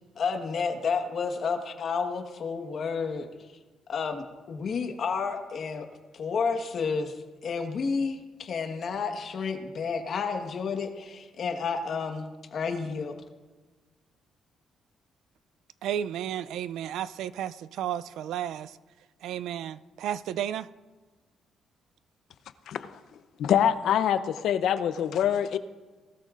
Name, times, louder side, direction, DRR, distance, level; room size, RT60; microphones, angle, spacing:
voice 1, 0.2-3.3 3.9-5.9 6.1-13.1, left 5 dB, 55° left, 5 dB, 1.3 m, -31 dB
voice 2, 15.8-18.8 19.2-20.7, right 10 dB, 80° right, 16 dB, 0.4 m, -33 dB
voice 3, 23.4-25.6, left 9 dB, 75° left, 12 dB, 0.7 m, -25 dB
19.0 x 13.0 x 2.5 m, 1.3 s
cardioid pair, 90°, 0 cm